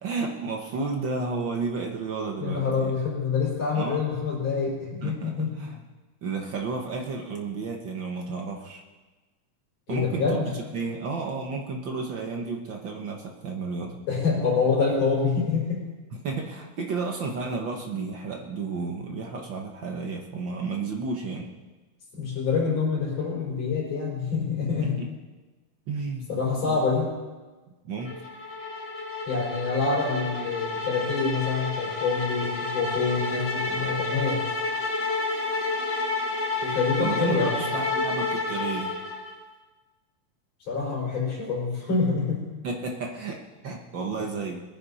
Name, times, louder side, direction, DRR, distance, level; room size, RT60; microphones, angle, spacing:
voice 1, 0.0-3.0 3.7-4.0 5.0-5.8 6.2-8.8 9.9-10.4 10.7-14.0 16.1-21.5 24.8-25.1 25.9-26.3 26.6-26.8 27.8-28.1 37.0-39.0 42.6-44.6, right 4 dB, 75° right, 1 dB, 1.0 m, -32 dB
voice 2, 2.4-5.5 9.9-10.5 14.1-16.0 22.1-25.0 26.3-27.1 29.3-34.4 36.6-37.6 40.7-42.4, left 4 dB, 50° left, -5 dB, 5.9 m, -26 dB
sound 1, 28.1-39.4, left 3 dB, 25° left, 1.6 m, -30 dB
22.0 x 10.5 x 4.2 m, 1.3 s
omnidirectional pair, 3.9 m